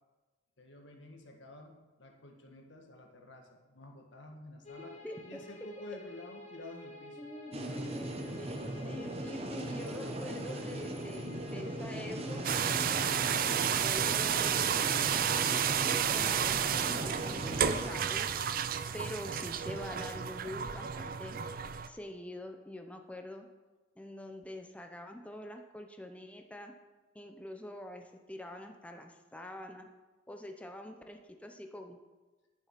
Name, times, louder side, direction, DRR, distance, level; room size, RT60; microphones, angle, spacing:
voice 1, 0.6-7.3, left 2 dB, 80° left, 3 dB, 1.6 m, -50 dB
sound 1, 4.6-16.3, left 1 dB, 35° left, 1.8 m, -50 dB
voice 2, 5.0-5.5 7.2-18.3 18.9-21.4 21.9-23.5 24.0-26.7 27.1-29.9 30.3-32.0, left 1 dB, 5° left, 4 dB, 0.6 m, -45 dB
sound 2, 7.5-17.9, right 1 dB, 35° right, 1.0 m, -39 dB
sound 3, 12.4-21.9, right 8 dB, 50° right, 0.4 m, -31 dB
10.5 x 6.9 x 5.8 m, 1.2 s
head